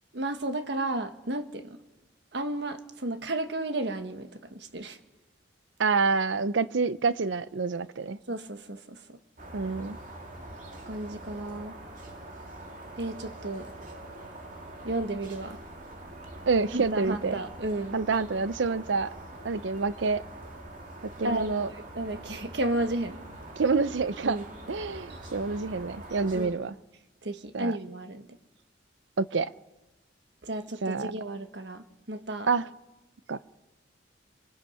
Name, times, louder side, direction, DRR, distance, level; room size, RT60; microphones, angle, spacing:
voice 1, 0.1-1.8 2.3-5.0 8.3-9.2 10.9-11.8 13.0-13.7 14.8-15.6 16.7-18.0 21.2-23.2 24.2-24.5 25.1-25.2 26.3-26.6 27.2-28.3 30.4-32.5, right 1 dB, 65° right, 1.4 m, -33 dB
voice 2, 5.8-8.2 9.5-10.0 16.5-17.3 17.9-19.1 19.4-20.2 21.2-21.7 23.6-24.4 24.7-26.7 27.5-27.7 29.2-29.5 30.8-31.1 32.5-32.7 33.3-33.4, right 4 dB, 85° right, 0.6 m, -27 dB
sound 1, 9.4-26.5, right 1 dB, 45° right, 2.7 m, -44 dB
25.5 x 23.0 x 5.7 m
head